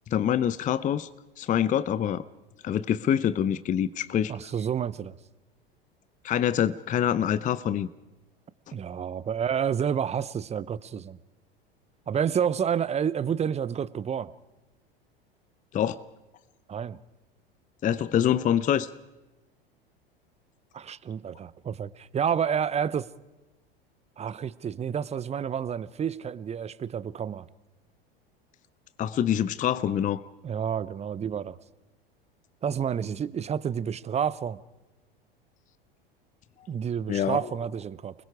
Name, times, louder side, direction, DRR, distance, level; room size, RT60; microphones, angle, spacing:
voice 1, 0.1-1.1 1.4-2.2 2.6-4.3 6.2-7.9 15.7-16.0 17.8-18.9 29.0-30.2 37.1-37.4, left 10 dB, 25° left, 16 dB, 0.7 m, -25 dB
voice 2, 4.3-5.1 8.7-11.2 12.1-14.3 16.7-17.0 20.7-23.1 24.2-27.5 30.4-31.6 32.6-34.6 36.7-38.1, right 8 dB, 20° right, 18 dB, 0.8 m, -29 dB
29.5 x 21.5 x 4.9 m, 1.1 s
hypercardioid pair, 80°, 29 cm